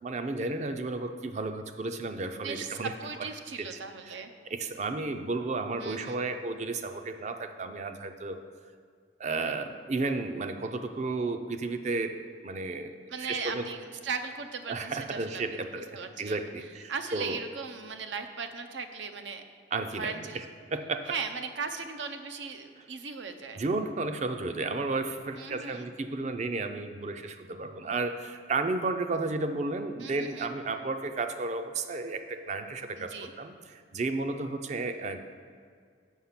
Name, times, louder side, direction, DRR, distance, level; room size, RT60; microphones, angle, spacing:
voice 1, 0.0-2.9 3.6-3.7 4.1-4.2 4.5-8.4 9.2-13.7 14.7-17.4 19.7-20.4 20.7-21.0 23.6-35.2, right 3 dB, 40° right, 8 dB, 0.5 m, -33 dB
voice 2, 2.3-4.3 5.8-6.2 13.1-15.6 15.9-16.4 16.9-19.4 19.9-20.4 21.1-23.6 25.3-25.9 30.0-30.5 33.0-33.3, right 5 dB, 85° right, 7 dB, 0.6 m, -38 dB
7.2 x 5.9 x 5.7 m, 2.1 s
head